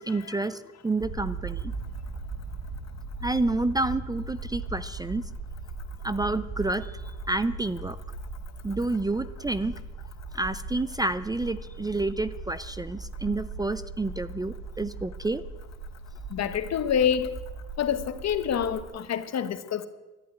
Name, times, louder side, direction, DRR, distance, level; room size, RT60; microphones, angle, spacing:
voice 1, 0.0-1.7 3.2-5.3 6.0-8.0 8.6-9.8 10.3-15.4, right 2 dB, 15° right, 0.5 m, -29 dB
sound 1, 1.0-18.8, right 3 dB, 65° right, 2.3 m, -39 dB
voice 2, 16.3-17.4 17.8-19.9, left 8 dB, 60° left, 1.1 m, -27 dB
11.5 x 11.0 x 9.4 m
cardioid pair, 90°, 30 cm